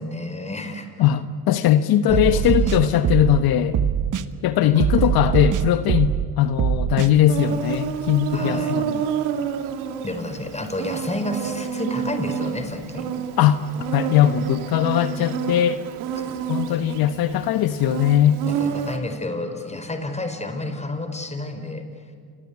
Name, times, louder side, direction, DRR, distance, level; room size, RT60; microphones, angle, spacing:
voice 1, 0.0-0.9 2.1-3.0 4.7-4.8 8.3-8.8 10.0-13.1 16.2-16.8 18.6-21.8, left 1 dB, 15° left, 7 dB, 4.9 m, -30 dB
voice 2, 1.0-3.9 4.4-9.0 13.4-13.6 13.9-15.9 16.5-18.4, left 11 dB, 60° left, 11 dB, 1.2 m, -20 dB
sound 1, 2.1-3.4 3.7-4.3 4.8-6.3 6.6-7.1, right 9 dB, 50° right, 1.3 m, -22 dB
Insect, 7.3-19.0, right 8 dB, 75° right, 2.8 m, -29 dB
29.5 x 23.0 x 8.4 m, 2.2 s
hypercardioid pair, 70°, 41 cm